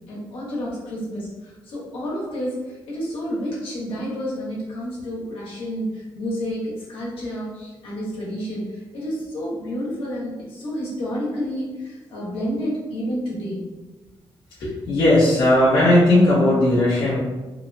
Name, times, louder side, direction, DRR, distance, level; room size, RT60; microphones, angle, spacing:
voice 1, 0.1-13.6 14.6-14.7, equal, 75° left, -6 dB, 1.0 m, -30 dB
voice 2, 14.9-17.2, left 1 dB, 60° left, -8 dB, 0.6 m, -16 dB
2.9 x 2.0 x 2.5 m, 1.2 s
wide cardioid pair, 150°, 9 cm